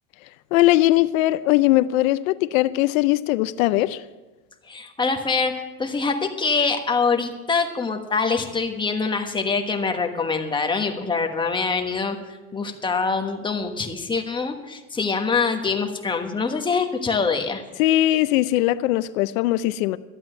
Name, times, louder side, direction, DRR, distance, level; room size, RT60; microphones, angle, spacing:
voice 1, 0.5-4.0 17.8-20.0, left 16 dB, 85° left, 0.6 m, -20 dB
voice 2, 4.7-17.6, left 4 dB, 10° left, 1.3 m, -24 dB
13.0 x 8.7 x 7.8 m
supercardioid pair, 135°, 39 cm